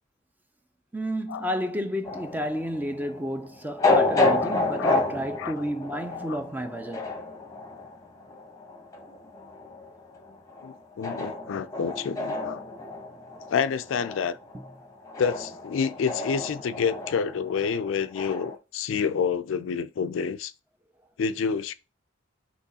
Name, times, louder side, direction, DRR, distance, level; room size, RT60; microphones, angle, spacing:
voice 1, 0.9-7.1 14.5-14.7, equal, 10° right, 0.4 m, -31 dB
sound 1, 2.0-18.6, left 2 dB, 15° left, 0.8 m, -30 dB
voice 2, 10.6-12.6 13.5-14.4 15.2-20.5 21.2-21.7, left 6 dB, 75° left, 0.3 m, -28 dB
6.0 x 3.1 x 2.7 m
head